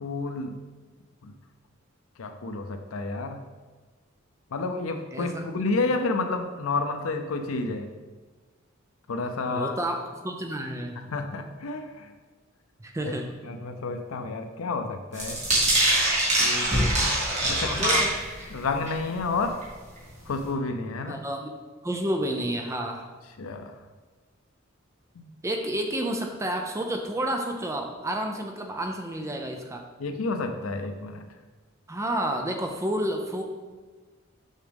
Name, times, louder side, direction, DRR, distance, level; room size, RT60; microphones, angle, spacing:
voice 1, 0.0-0.6 1.2-1.3 2.2-3.4 4.5-7.9 9.1-9.8 10.9-12.1 13.0-13.1 13.4-15.4 16.4-16.7 17.5-18.0 18.5-19.5 20.3-21.2 23.4-23.7 25.2-25.3 30.0-31.2, left 3 dB, 80° left, 6 dB, 0.5 m, -30 dB
voice 2, 5.1-5.4 9.5-11.0 12.8-13.3 17.2-18.1 21.1-21.5 21.8-23.1 25.4-29.8 31.9-33.4, right 1 dB, 15° right, 3 dB, 0.5 m, -30 dB
sound 1, 15.1-18.5 18.9-19.2 19.6-19.7 20.0-20.1, right 1 dB, 35° right, 2.2 m, -23 dB
6.3 x 6.1 x 3.4 m, 1.4 s
head